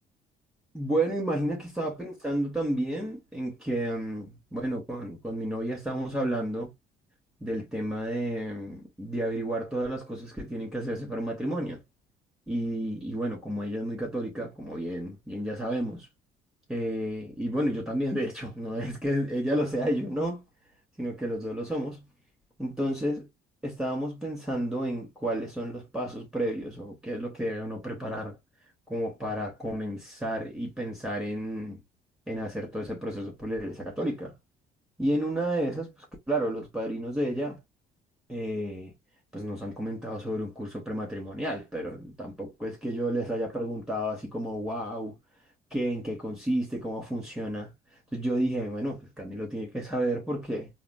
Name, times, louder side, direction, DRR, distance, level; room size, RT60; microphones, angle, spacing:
voice 1, 0.7-6.7 7.4-11.8 12.5-16.1 16.7-20.4 21.0-22.0 22.6-23.3 23.6-28.3 28.9-31.8 32.3-34.3 35.0-35.9 36.3-37.6 38.3-38.9 39.3-45.2 45.7-47.7 48.1-50.7, right 1 dB, 5° right, 3.1 m, -31 dB
4.9 x 2.6 x 2.5 m
cardioid pair, 110°, 17 cm